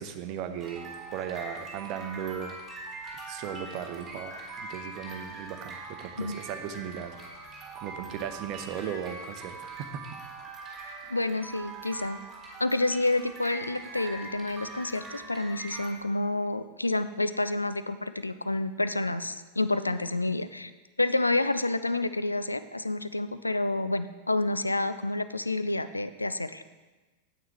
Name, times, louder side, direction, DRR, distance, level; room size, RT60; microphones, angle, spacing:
voice 1, 0.0-2.6 3.3-7.2 7.8-10.0 10.7-10.8, right 8 dB, 40° right, 9 dB, 0.7 m, -37 dB
sound 1, 0.6-15.9, right 3 dB, 20° right, 2.0 m, -42 dB
voice 2, 11.1-12.2 12.6-20.7 21.0-26.6, left 2 dB, 85° left, 12 dB, 0.3 m, -29 dB
9.2 x 7.7 x 3.4 m, 1.2 s
figure-of-eight pair, 90°, 0 cm